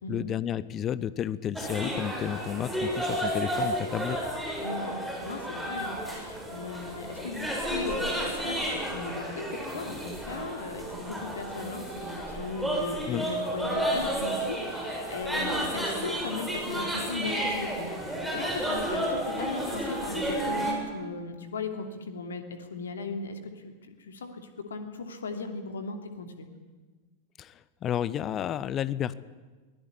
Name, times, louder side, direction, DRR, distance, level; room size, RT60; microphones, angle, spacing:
voice 1, 0.1-4.2 13.1-13.3 27.4-29.2, left 10 dB, 30° left, 18 dB, 1.0 m, -31 dB
sound 1, 1.6-20.7, right 1 dB, ahead, 7.2 m, -32 dB
voice 2, 4.6-23.5 23.8-26.5, left 4 dB, 65° left, 7 dB, 2.9 m, -37 dB
23.0 x 18.5 x 10.0 m, 1.3 s
figure-of-eight pair, 90°, 0 cm